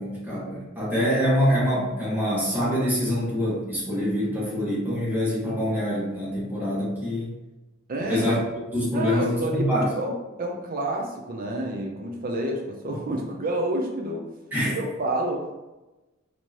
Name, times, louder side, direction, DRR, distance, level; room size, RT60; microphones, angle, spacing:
voice 1, 0.0-7.3 8.1-8.4 8.7-9.9 14.5-14.7, equal, 10° right, -8 dB, 1.4 m, -25 dB
voice 2, 7.9-8.3 8.9-9.7 10.0-14.3 14.6-15.5, right 1 dB, 45° right, 1 dB, 0.6 m, -29 dB
4.5 x 2.8 x 2.9 m, 1.1 s
head